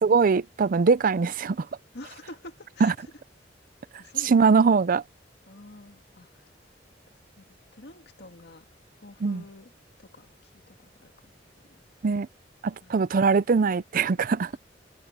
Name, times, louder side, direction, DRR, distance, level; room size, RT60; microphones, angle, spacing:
voice 1, 0.0-1.7 2.8-2.9 4.2-5.0 9.2-9.4 12.0-12.3 12.6-14.5, right 5 dB, 50° right, 0.4 m, -21 dB
voice 2, 1.9-3.1 4.0-4.4 5.5-6.5 7.1-7.5 7.7-8.7 8.9-9.7 10.0-11.8 12.8-13.0 14.5-14.6, left 2 dB, 65° left, 1.9 m, -48 dB
head